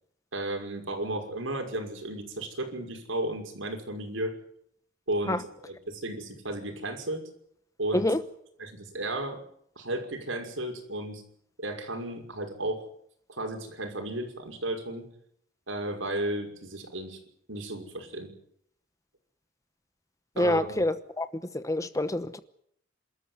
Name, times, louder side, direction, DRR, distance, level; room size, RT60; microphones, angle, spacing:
voice 1, 0.3-4.3 5.1-7.3 7.8-8.1 8.6-9.4 9.8-11.2 11.6-12.8 13.3-15.1 15.7-17.2 17.5-18.3 20.4-20.9, right 1 dB, 75° right, 5.8 m, -34 dB
voice 2, 20.4-21.3 21.5-22.4, left 1 dB, 15° left, 1.0 m, -26 dB
28.0 x 13.5 x 9.6 m
head